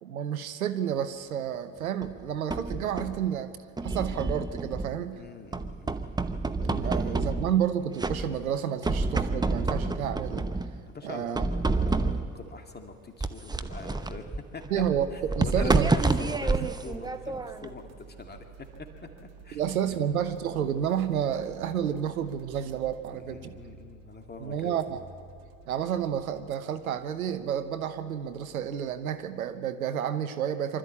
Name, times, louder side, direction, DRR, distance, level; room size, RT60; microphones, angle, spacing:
voice 1, 0.0-3.6 3.8-5.2 6.6-10.5 11.0-11.5 14.7-15.1 15.4-15.9 19.5-23.5 24.4-25.0 25.7-30.8, right 9 dB, 85° right, 11 dB, 1.0 m, -30 dB
sound 1, 2.0-3.2 3.8-5.1 5.5-7.7 8.0-8.6 8.8-10.8 11.3-12.4 13.2-17.7, right 3 dB, 10° right, 0.9 m, -29 dB
voice 2, 5.1-6.0 10.9-14.3 14.5-14.8 15.1-18.5 19.4-19.6 23.1-24.8, left 3 dB, 25° left, 4 dB, 2.2 m, -43 dB
sound 2, 16.2-29.6, right 6 dB, 65° right, 1.8 m, -51 dB
24.5 x 13.0 x 8.5 m, 2.1 s
hypercardioid pair, 70°, 41 cm